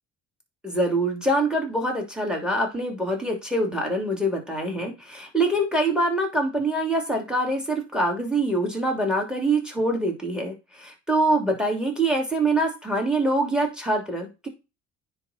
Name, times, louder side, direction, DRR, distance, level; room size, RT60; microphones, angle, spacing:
voice 1, 0.6-14.5, right 1 dB, ahead, 3 dB, 3.0 m, -24 dB
9.7 x 3.6 x 4.3 m, 0.28 s
hypercardioid pair, 65°, 34 cm